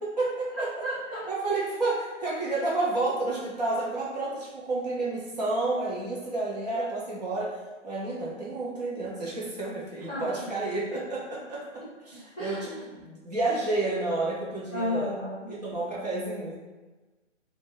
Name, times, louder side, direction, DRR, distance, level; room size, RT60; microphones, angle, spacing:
voice 1, 0.0-0.7 1.2-7.5 7.8-11.6 12.1-15.1 15.5-16.6, right 2 dB, 35° right, -5 dB, 0.7 m, -30 dB
voice 2, 0.8-1.3 10.1-10.2 12.4-12.8 14.7-15.5, left 1 dB, ahead, -30 dB, 0.5 m, -32 dB
2.4 x 2.1 x 3.7 m, 1.2 s
figure-of-eight pair, 150°, 38 cm